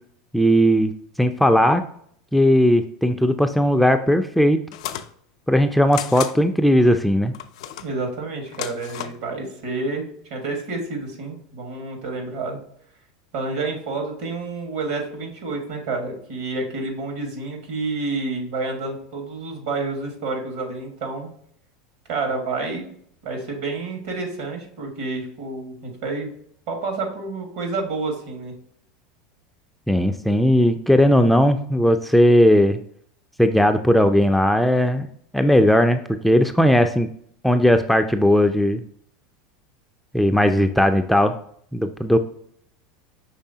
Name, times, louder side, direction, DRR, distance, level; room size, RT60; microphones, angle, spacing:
voice 1, 0.3-1.8 2.3-4.6 5.5-7.3 29.9-32.8 33.4-35.1 35.3-37.1 37.4-38.8 40.1-41.4 41.7-42.2, equal, ahead, 6 dB, 0.3 m, -17 dB
sound 1, 4.7-5.1 5.9-6.4 7.3-7.9 8.5-9.2, left 11 dB, 75° left, 0.4 m, -32 dB
voice 2, 7.8-12.6 13.3-21.3 22.1-22.9 23.2-26.3 26.7-28.5, right 3 dB, 75° right, 2 dB, 1.7 m, -29 dB
5.5 x 3.4 x 2.7 m, 0.64 s
hypercardioid pair, 100°, 3 cm